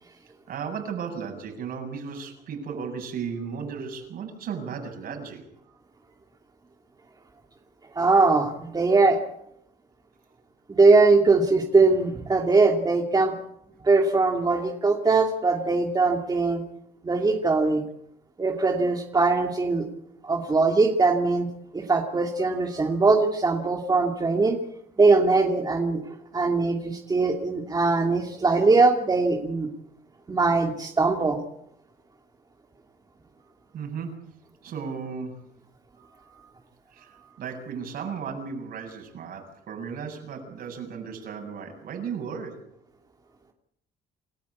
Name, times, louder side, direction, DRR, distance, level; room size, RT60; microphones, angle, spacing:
voice 1, 0.5-5.5 33.7-34.2 34.6-35.3 36.9-42.7, right 6 dB, 60° right, 4 dB, 7.6 m, -35 dB
voice 2, 7.9-9.2 10.7-13.3 13.8-16.6 17.0-17.8 18.4-19.9 20.2-21.5 21.7-24.6 25.0-26.0 26.3-29.7 30.3-31.4 36.0-36.5 37.0-37.3, right 3 dB, 20° right, 2 dB, 2.7 m, -21 dB
28.5 x 14.5 x 8.5 m, 0.76 s
cardioid pair, 110°, 17 cm